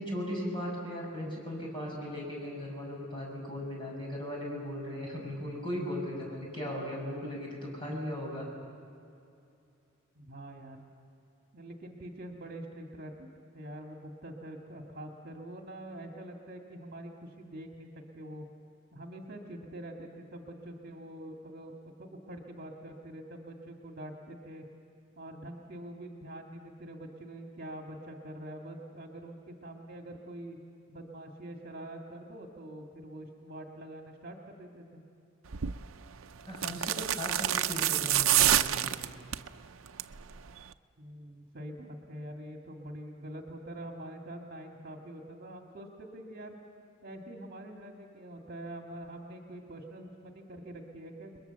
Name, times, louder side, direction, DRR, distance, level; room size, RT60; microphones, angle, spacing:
voice 1, 0.0-8.5 36.4-38.9, left 1 dB, 25° left, -2 dB, 6.7 m, -37 dB
voice 2, 10.2-10.9 11.5-13.3 13.5-17.9 18.1-18.5 18.9-21.7 22.0-24.6 25.2-30.6 30.9-35.0 41.0-46.5 47.0-51.4, right 1 dB, 45° right, 2 dB, 2.1 m, -45 dB
sound 1, 35.5-35.8 36.5-39.5 39.9-40.2 40.5-40.6, right 12 dB, 90° right, 0.6 m, -27 dB
30.0 x 21.5 x 7.0 m, 2.6 s
head